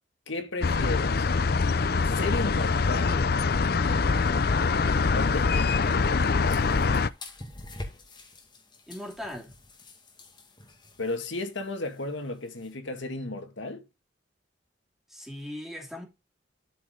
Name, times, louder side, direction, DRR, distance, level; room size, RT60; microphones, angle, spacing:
voice 1, 0.3-1.3 2.1-3.2 5.1-6.6 11.0-13.8, left 2 dB, 80° left, 1.9 m, -34 dB
sound 1, 0.6-7.1, left 4 dB, 55° left, 0.5 m, -24 dB
sound 2, 4.0-12.7, left 1 dB, 25° left, 2.1 m, -47 dB
voice 2, 8.9-9.5 15.1-16.0, left 1 dB, ahead, 2.8 m, -39 dB
12.5 x 5.1 x 3.8 m
head